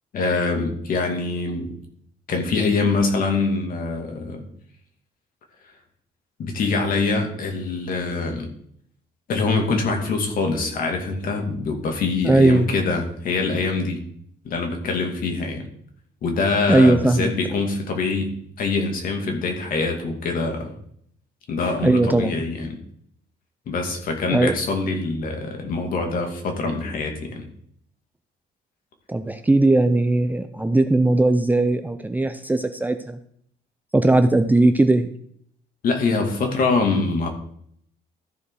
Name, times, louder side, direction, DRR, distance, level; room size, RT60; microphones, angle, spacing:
voice 1, 0.1-1.8 2.3-4.5 6.4-8.5 9.3-14.0 14.4-15.7 16.2-20.7 21.5-22.8 23.7-27.5 35.8-37.3, left 3 dB, 55° left, 3 dB, 2.5 m, -24 dB
voice 2, 12.2-12.7 16.7-17.3 21.8-22.4 24.3-24.6 29.1-33.2 33.9-35.1, right 2 dB, 10° right, 8 dB, 0.6 m, -18 dB
14.0 x 5.1 x 4.9 m, 0.66 s
cardioid pair, 110°, 17 cm